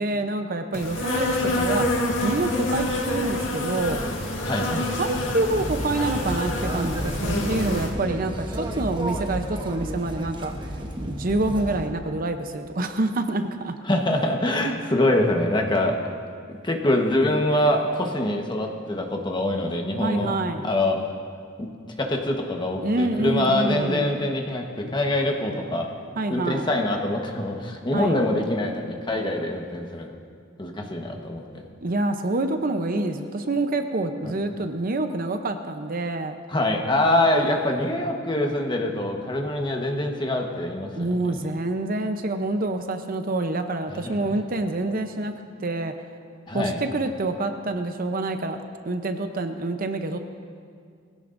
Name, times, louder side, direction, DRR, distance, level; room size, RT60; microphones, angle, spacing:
voice 1, 0.0-1.9 2.2-4.0 4.7-10.5 11.0-13.7 20.0-20.7 22.8-24.1 26.2-26.7 27.9-28.2 31.8-36.4 41.0-45.3 45.6-45.9 46.5-50.2, right 2 dB, 45° right, 7 dB, 0.7 m, -27 dB
Insect, 0.7-7.9, left 1 dB, 75° left, 1.9 m, -27 dB
sound 1, 5.4-11.9, right 1 dB, 25° right, 1.1 m, -32 dB
voice 2, 13.8-16.0 16.5-20.4 20.6-21.0 21.6-21.7 22.0-25.9 26.3-30.2 30.6-31.6 34.2-34.3 36.5-41.1 43.9-44.2 46.5-46.8, left 1 dB, 25° left, 2 dB, 1.2 m, -24 dB
20.5 x 16.5 x 2.6 m, 2.1 s
head